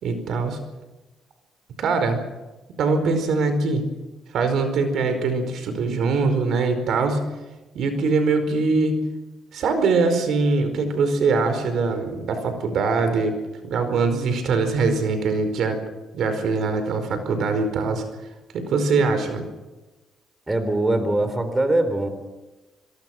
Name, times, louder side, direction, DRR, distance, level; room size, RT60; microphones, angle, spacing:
voice 1, 0.0-0.6 1.8-2.2 2.8-3.8 4.3-7.2 7.7-9.0 9.5-13.4 13.6-15.8 16.1-18.0 18.5-19.4, right 4 dB, 70° right, 8 dB, 4.8 m, -22 dB
voice 2, 20.5-22.1, right 1 dB, 15° right, 9 dB, 3.8 m, -22 dB
26.0 x 22.5 x 6.2 m, 1.1 s
cardioid pair, 90°, 0 cm